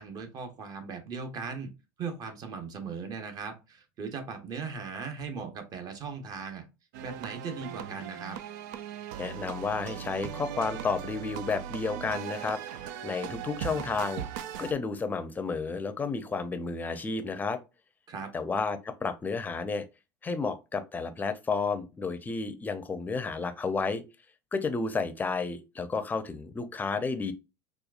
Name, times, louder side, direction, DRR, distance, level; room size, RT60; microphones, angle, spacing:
voice 1, 0.0-1.7 2.0-6.7 7.0-8.4 18.1-18.3, right 5 dB, 40° right, 1.0 m, -38 dB
sound 1, 6.9-14.7, right 10 dB, 70° right, 0.4 m, -39 dB
voice 2, 9.2-14.2 14.6-17.6 18.3-19.9 20.2-24.0 24.5-27.3, left 4 dB, 15° left, 0.6 m, -32 dB
4.2 x 2.4 x 2.4 m
supercardioid pair, 100°, 10 cm